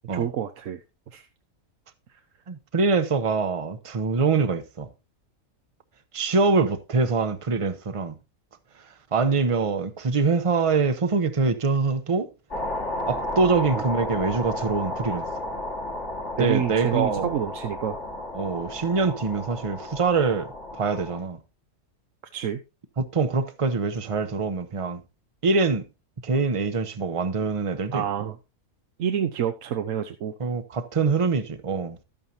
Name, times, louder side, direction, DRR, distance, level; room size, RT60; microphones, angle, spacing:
voice 1, 0.1-0.8 1.1-1.3 13.7-13.8 16.4-18.0 22.3-22.6 27.9-28.4 29.0-30.3, right 9 dB, 75° right, 1.1 m, -28 dB
voice 2, 2.5-4.9 6.1-8.1 9.1-12.3 13.1-15.3 16.4-17.4 18.3-21.4 23.0-25.0 25.4-25.9 26.2-28.3 30.4-32.0, right 4 dB, 30° right, 0.7 m, -24 dB
sound 1, 12.5-21.2, left 1 dB, 60° left, 2.3 m, -33 dB
12.5 x 8.9 x 2.8 m
omnidirectional pair, 1.4 m